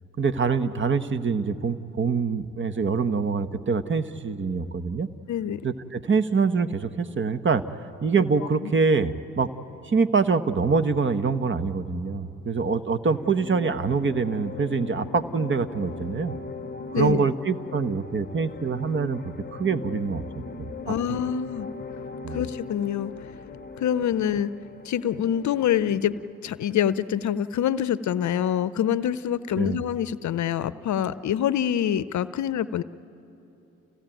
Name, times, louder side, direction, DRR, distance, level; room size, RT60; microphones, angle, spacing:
voice 1, 0.2-5.1 5.6-7.6 8.0-9.5 9.8-16.3 16.9-19.2 19.5-20.2 20.6-21.2 22.2-22.4 29.6-29.8, right 5 dB, 35° right, 11 dB, 1.1 m, -25 dB
voice 2, 5.3-5.6 8.6-8.7 16.9-17.3 20.9-21.7 22.3-23.1 23.8-24.5 24.8-32.8, left 9 dB, 55° left, 16 dB, 0.7 m, -26 dB
sound 1, 13.0-26.4, left 4 dB, 30° left, 0.9 m, -40 dB
28.5 x 16.0 x 9.1 m, 2.9 s
hypercardioid pair, 50°, 34 cm